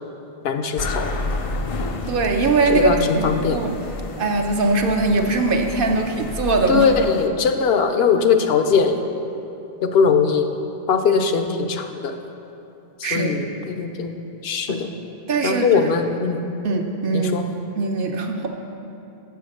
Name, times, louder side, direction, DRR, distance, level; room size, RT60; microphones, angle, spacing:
voice 1, 0.4-1.1 2.7-3.6 6.7-8.9 9.8-10.5 10.9-12.2 13.1-14.1 14.4-14.9 15.4-16.4 17.1-17.4, left 5 dB, 75° left, 6 dB, 0.8 m, -20 dB
sound 1, 0.8-7.3, left 2 dB, 50° left, 0.4 m, -30 dB
voice 2, 2.1-3.7 4.2-6.9 13.0-13.3 14.7-14.8 15.3-15.9 16.6-17.3 17.8-18.5, right 3 dB, 60° right, 3 dB, 0.8 m, -21 dB
7.0 x 6.5 x 6.3 m, 2.8 s
omnidirectional pair, 1.1 m